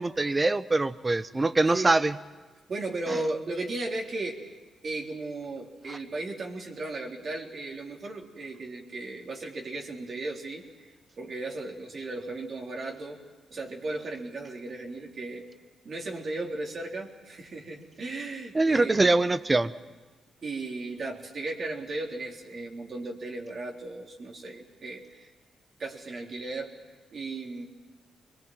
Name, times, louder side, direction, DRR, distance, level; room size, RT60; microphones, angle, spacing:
voice 1, 0.0-2.2 18.5-19.7, right 2 dB, 30° right, 14 dB, 1.1 m, -23 dB
voice 2, 2.7-10.9 11.2-13.2 13.5-15.4 15.8-19.1 20.4-25.3 25.8-26.7 27.1-27.7, right 2 dB, 55° right, 0 dB, 3.8 m, -36 dB
23.5 x 21.0 x 7.6 m, 1.3 s
supercardioid pair, 45°, 0 cm